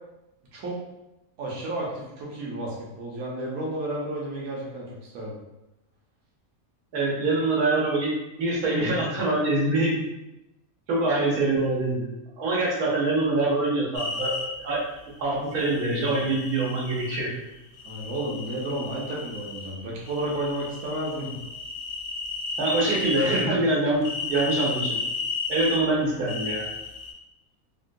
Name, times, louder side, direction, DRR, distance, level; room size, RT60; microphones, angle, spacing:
voice 1, 1.4-5.4 17.8-21.4, right 1 dB, 70° right, -4 dB, 1.1 m, -32 dB
voice 2, 6.9-8.1 8.4-10.0 10.9-12.1 12.4-14.3 14.6-14.8 15.2-17.3 22.6-25.0 25.5-26.7, right 2 dB, 90° right, -4 dB, 1.4 m, -24 dB
sound 1, 13.9-14.4 15.6-17.2 17.8-19.7 20.1-23.5 24.0-25.8 26.3-27.1, left 4 dB, 75° left, 1.1 m, -33 dB
3.6 x 2.2 x 2.5 m, 0.92 s
omnidirectional pair, 1.5 m